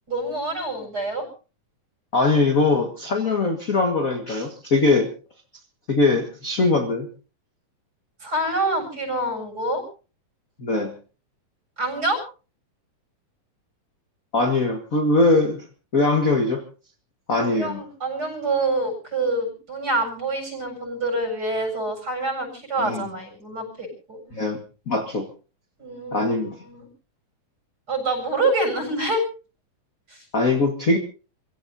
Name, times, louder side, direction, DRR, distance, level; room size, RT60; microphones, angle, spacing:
voice 1, 0.1-1.3 8.2-9.8 11.8-12.2 17.4-24.2 25.8-26.8 27.9-29.2 30.1-30.3, right 2 dB, 25° right, 3 dB, 7.9 m, -26 dB
voice 2, 2.1-5.1 5.9-7.1 10.6-10.9 14.3-15.6 15.9-16.6 17.3-17.8 22.8-23.1 24.3-24.6 24.9-25.3 26.1-26.5 30.3-31.0, left 2 dB, 35° left, 4 dB, 1.3 m, -21 dB
29.5 x 16.5 x 2.8 m, 0.37 s
omnidirectional pair, 4.2 m